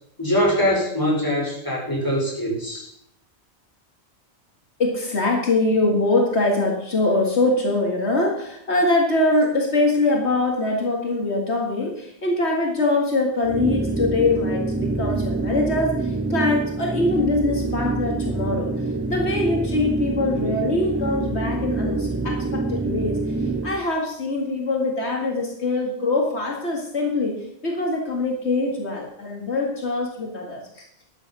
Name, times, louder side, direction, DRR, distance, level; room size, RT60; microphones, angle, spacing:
voice 1, 0.2-2.9, equal, 20° left, -3 dB, 4.9 m, -23 dB
voice 2, 4.8-27.3 27.6-30.9, left 2 dB, 75° left, 0 dB, 2.4 m, -23 dB
sound 1, 13.4-23.8, right 3 dB, 15° right, 0.5 m, -26 dB
13.0 x 9.1 x 5.6 m, 0.73 s
omnidirectional pair, 1.1 m